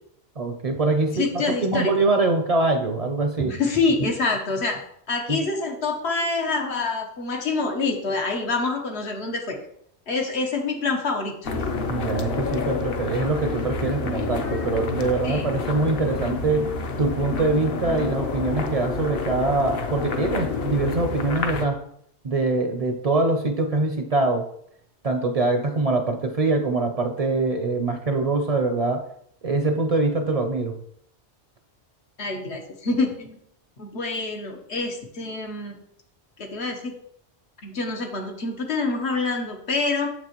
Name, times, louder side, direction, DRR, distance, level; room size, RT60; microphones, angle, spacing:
voice 1, 0.4-3.5 5.3-5.4 11.9-16.7 17.0-21.8 22.2-24.5 25.0-29.0 29.4-30.8, right 3 dB, 45° right, 5 dB, 0.6 m, -23 dB
voice 2, 1.1-1.9 3.4-4.8 5.1-9.6 10.1-11.3 15.2-15.5 32.2-33.4 33.8-35.8 36.4-36.9 37.6-40.1, left 3 dB, 85° left, 2 dB, 1.4 m, -26 dB
sound 1, 11.4-21.7, left 4 dB, 65° left, 0.9 m, -29 dB
7.1 x 6.0 x 3.0 m, 0.70 s
omnidirectional pair, 1.1 m